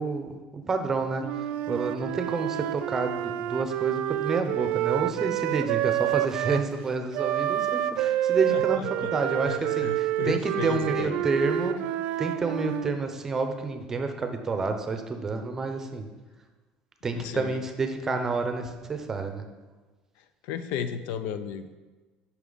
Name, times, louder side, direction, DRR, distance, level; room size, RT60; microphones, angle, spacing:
voice 1, 0.0-11.8 12.2-16.1 17.0-19.4, right 4 dB, 15° right, 6 dB, 0.7 m, -29 dB
Wind instrument woodwind instrument, 1.2-6.7 7.1-13.0, right 13 dB, 60° right, 0.3 m, -28 dB
voice 2, 8.1-9.1 9.4-11.2 17.1-17.6 20.4-21.7, left 8 dB, 75° left, 11 dB, 0.5 m, -34 dB
9.3 x 5.9 x 3.9 m, 1.2 s
cardioid pair, 170°, 3 cm